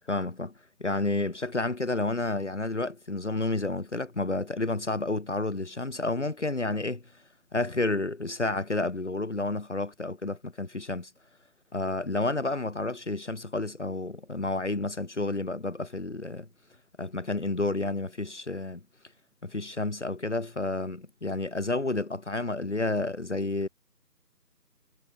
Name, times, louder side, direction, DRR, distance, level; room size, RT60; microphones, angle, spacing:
voice 1, 0.1-0.5 0.8-7.0 7.5-11.1 11.7-16.5 17.0-18.8 19.4-23.7, left 2 dB, 45° left, 2.8 m, -30 dB
figure-of-eight pair, 165°, 49 cm